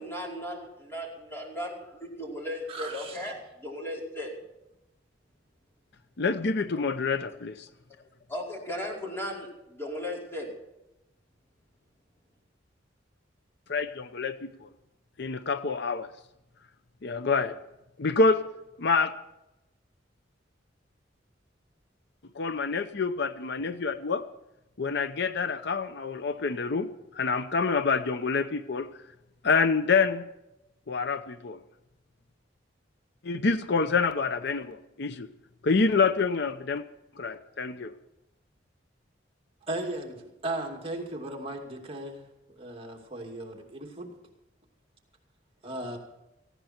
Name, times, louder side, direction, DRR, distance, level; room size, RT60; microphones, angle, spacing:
voice 1, 0.0-4.3 8.3-10.5, left 1 dB, 15° left, -2 dB, 4.9 m, -36 dB
voice 2, 2.7-3.3 39.7-42.2 42.6-44.1 45.6-46.0, right 2 dB, 30° right, 1 dB, 2.5 m, -36 dB
voice 3, 6.2-7.7 13.7-14.7 15.2-16.1 17.0-17.6 18.0-18.4 18.8-19.1 22.3-24.3 24.8-28.9 29.4-30.2 30.9-31.6 33.2-35.3 35.6-36.8 37.2-37.9, left 4 dB, 65° left, 11 dB, 0.8 m, -27 dB
18.5 x 16.0 x 4.4 m, 0.92 s
head